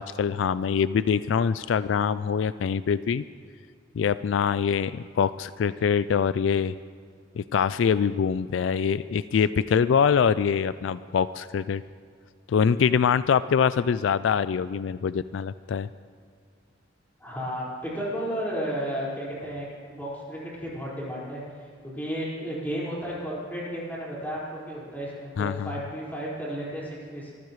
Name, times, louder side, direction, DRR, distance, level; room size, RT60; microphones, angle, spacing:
voice 1, 0.0-3.2 3.9-6.7 7.3-11.8 12.5-15.9 25.4-25.7, left 7 dB, 75° left, 15 dB, 0.3 m, -24 dB
voice 2, 17.2-21.4 21.9-27.3, equal, 10° left, -7 dB, 4.8 m, -33 dB
24.0 x 15.0 x 3.2 m, 2.1 s
head